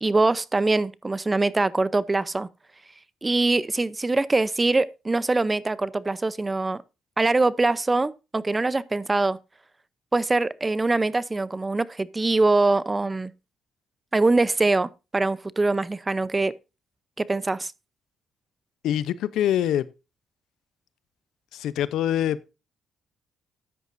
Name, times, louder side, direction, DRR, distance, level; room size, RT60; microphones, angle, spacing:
voice 1, 0.0-2.5 3.2-6.8 7.2-9.4 10.1-13.3 14.1-16.5 17.2-17.7, right 2 dB, 20° right, 0.6 m, -23 dB
voice 2, 18.8-19.9 21.5-22.5, left 11 dB, 80° left, 0.7 m, -25 dB
13.0 x 9.5 x 2.6 m
cardioid pair, 90°, 0 cm